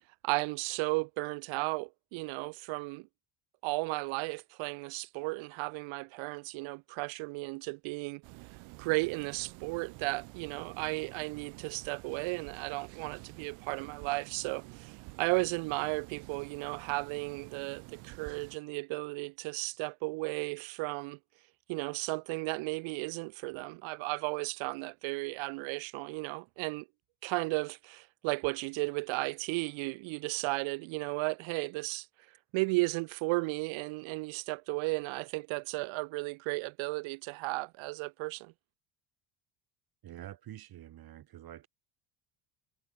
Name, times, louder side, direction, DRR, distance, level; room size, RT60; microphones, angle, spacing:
voice 1, 0.2-3.1 3.6-8.2 8.8-21.2 21.7-26.9 27.2-32.1 32.5-38.5, right 26 dB, 70° right, 0.7 m, -34 dB
sound 1, 8.2-18.6, right 27 dB, 90° right, 1.9 m, -50 dB
voice 2, 40.0-41.7, right 12 dB, 45° right, 6.2 m, -47 dB
cardioid pair, 155°, 49 cm